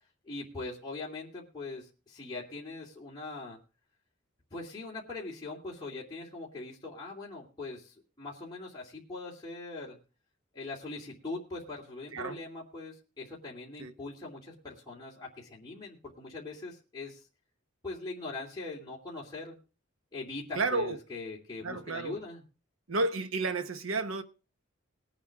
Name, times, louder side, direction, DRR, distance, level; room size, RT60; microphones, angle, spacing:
voice 1, 0.2-3.6 4.5-10.0 10.5-17.3 17.8-19.6 20.1-22.4, left 3 dB, 20° left, 2.7 m, -41 dB
voice 2, 20.5-21.0 21.6-22.2 22.9-24.2, right 3 dB, 85° right, 1.1 m, -31 dB
20.0 x 8.7 x 3.6 m
head